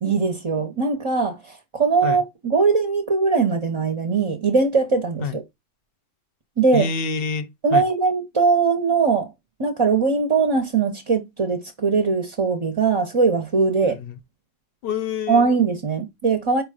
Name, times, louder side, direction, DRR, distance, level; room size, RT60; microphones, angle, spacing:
voice 1, 0.0-5.4 6.6-6.9 7.6-9.3 9.6-14.0 15.3-16.6, right 4 dB, 35° right, 0.6 m, -21 dB
voice 2, 6.7-7.9 13.9-14.1 14.8-15.5, left 5 dB, 65° left, 0.8 m, -27 dB
4.8 x 2.2 x 4.8 m
omnidirectional pair, 1.1 m